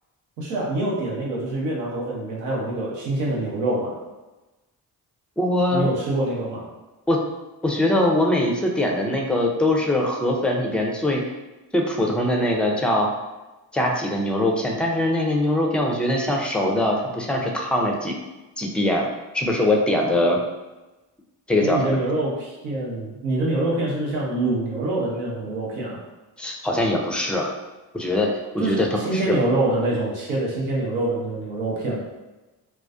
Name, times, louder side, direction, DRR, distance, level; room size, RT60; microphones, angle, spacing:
voice 1, 0.4-4.0 5.7-6.6 21.6-26.0 28.6-32.0, right 2 dB, 90° right, -4 dB, 0.8 m, -25 dB
voice 2, 5.4-5.9 7.1-7.2 7.6-11.2 11.7-13.1 13.7-18.1 18.6-19.1 19.3-20.4 21.5-22.0 26.4-27.5 27.9-28.9 29.1-29.4, left 1 dB, 5° left, 0 dB, 0.3 m, -22 dB
2.4 x 2.2 x 2.4 m, 1.1 s
hypercardioid pair, 50°, 47 cm